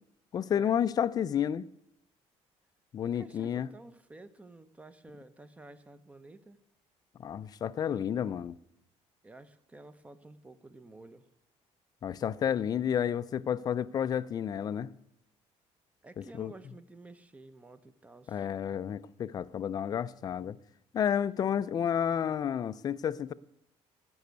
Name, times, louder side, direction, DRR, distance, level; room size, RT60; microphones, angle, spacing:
voice 1, 0.3-1.7 2.9-3.7 7.2-8.6 12.0-14.9 16.2-16.5 18.3-20.6 20.9-23.3, left 9 dB, 30° left, 0.4 m, -31 dB
voice 2, 3.1-6.6 9.2-11.3 16.0-18.5, right 2 dB, 10° right, 0.6 m, -52 dB
13.5 x 6.2 x 9.4 m
cardioid pair, 170°, 12 cm